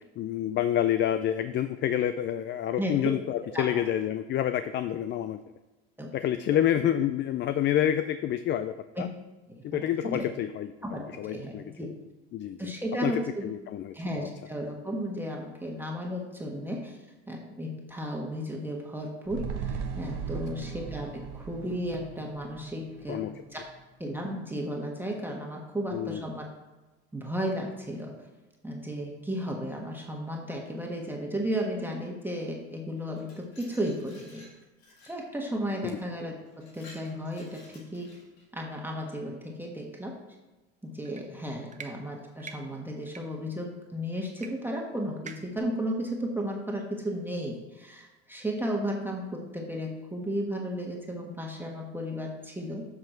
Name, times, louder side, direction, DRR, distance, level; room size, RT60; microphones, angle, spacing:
voice 1, 0.2-5.4 6.1-9.1 9.6-11.6 12.3-12.7 13.0-14.3 23.1-23.4 25.9-26.2 35.8-36.0, left 11 dB, 35° left, 11 dB, 0.4 m, -28 dB
voice 2, 9.5-10.3 10.8-11.0 11.3-11.9 12.6-13.5 13.9-17.0 17.3-23.6 24.0-26.4 27.1-28.2 28.6-34.5 35.0-38.1 38.5-40.2 40.8-52.9, equal, 5° right, -1 dB, 1.5 m, -34 dB
sound 1, 19.3-23.8 24.1-24.2, right 6 dB, 65° right, 1.1 m, -38 dB
Glass, 33.0-35.2 35.9-36.1 36.5-38.5, left 1 dB, 90° left, 2.0 m, -54 dB
sound 2, 41.1-41.2 41.7-41.9 42.4-42.6 43.1-43.2 44.4-44.5 44.8-44.9 45.3-45.6, right 6 dB, 25° right, 0.8 m, -43 dB
7.8 x 5.9 x 4.4 m, 1.2 s
hypercardioid pair, 80°, 32 cm